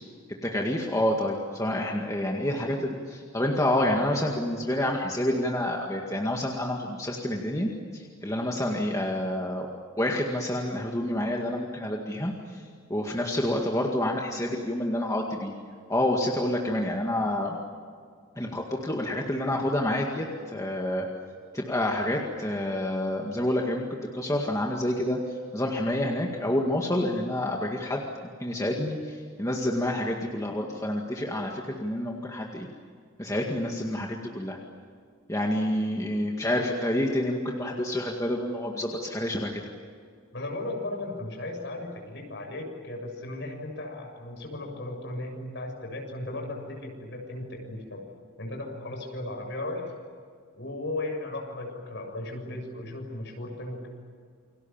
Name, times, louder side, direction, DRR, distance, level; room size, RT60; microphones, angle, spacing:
voice 1, 0.4-9.7 10.0-15.5 15.9-17.6 18.4-21.1 21.5-23.9 24.1-28.0 28.4-32.7 33.2-34.6 35.3-39.6, left 1 dB, 15° left, 0 dB, 2.0 m, -28 dB
voice 2, 40.3-48.1 48.4-49.9 50.5-53.9, left 2 dB, 55° left, 2 dB, 7.2 m, -36 dB
29.5 x 24.5 x 7.4 m, 2.1 s
head